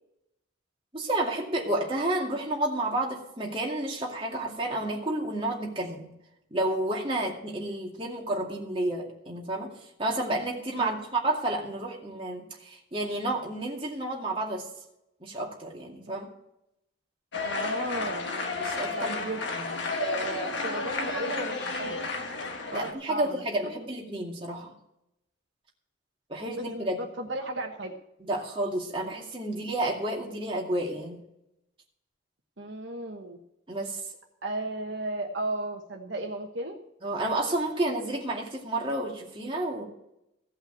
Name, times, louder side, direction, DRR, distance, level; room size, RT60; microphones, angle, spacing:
voice 1, 0.9-6.1 6.5-9.7 10.0-14.7 15.2-16.3 18.6-19.2 19.5-19.8 22.7-24.7 26.3-27.0 28.3-31.2 33.7-34.0 37.0-39.8, right 1 dB, 25° right, -2 dB, 2.3 m, -30 dB
sound 1, 17.3-22.9, left 3 dB, 60° left, 1.4 m, -32 dB
voice 2, 17.4-18.2 18.9-19.4 20.0-22.0 22.7-23.4 26.6-27.9 32.6-33.4 34.4-36.8, right 2 dB, 65° right, 2 dB, 1.2 m, -34 dB
16.0 x 5.6 x 8.1 m, 0.83 s
head